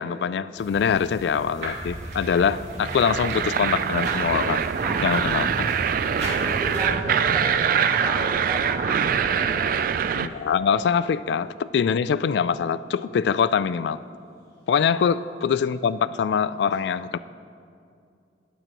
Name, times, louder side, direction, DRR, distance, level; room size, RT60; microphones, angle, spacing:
voice 1, 0.0-4.6 5.0-5.7 10.2-14.0 14.7-17.2, left 7 dB, 70° left, 15 dB, 0.3 m, -24 dB
sound 1, 0.6-6.9, right 1 dB, 75° right, 2.7 m, -37 dB
sound 2, 2.1-10.3, right 7 dB, 50° right, 0.3 m, -24 dB
voice 2, 4.8-5.4 6.2-9.7 14.8-15.0, equal, 20° right, -5 dB, 1.9 m, -34 dB
18.0 x 8.1 x 3.0 m, 2.4 s
head